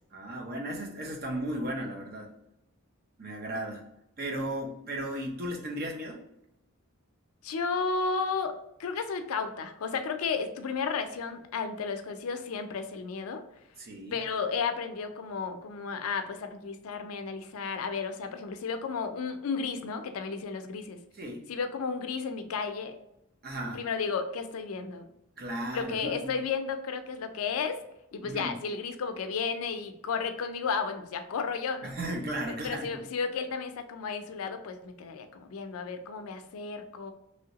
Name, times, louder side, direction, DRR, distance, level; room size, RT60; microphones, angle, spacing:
voice 1, 0.1-2.3 3.2-3.9 4.2-6.2 13.8-14.2 21.1-21.4 23.4-23.8 25.4-26.4 28.2-28.6 31.8-33.0, right 1 dB, 45° right, 1 dB, 0.7 m, -35 dB
voice 2, 7.4-8.5 8.8-13.4 14.1-21.0 21.5-23.0 23.7-25.0 25.7-27.8 28.1-31.9 32.5-37.1, left 5 dB, 90° left, 8 dB, 0.4 m, -33 dB
3.0 x 2.8 x 2.8 m, 0.83 s
head